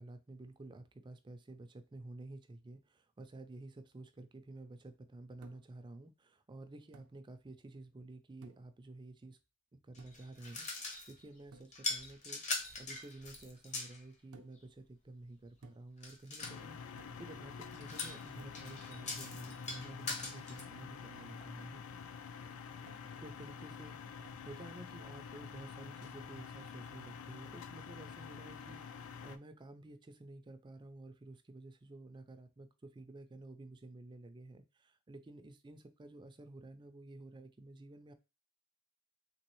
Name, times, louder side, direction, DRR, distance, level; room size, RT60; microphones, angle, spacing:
voice 1, 0.0-9.4 9.8-21.8 23.2-24.0 24.5-38.1, right 2 dB, 20° right, 0.3 m, -52 dB
sound 1, 5.4-5.8 6.9-7.2 8.4-8.8 10.0-10.4 11.5-11.8 14.3-14.7 15.6-16.0 17.0-17.3 18.4-18.8 19.7-20.0 21.4-21.6 22.9-23.2 24.2-24.5, right 4 dB, 80° right, 0.5 m, -59 dB
sound 2, 9.9-11.2 11.7-14.0 16.0-16.6 17.7-20.6, left 3 dB, 30° left, 0.7 m, -42 dB
sound 3, 16.4-29.4, left 6 dB, 70° left, 0.4 m, -48 dB
3.3 x 3.0 x 3.0 m
head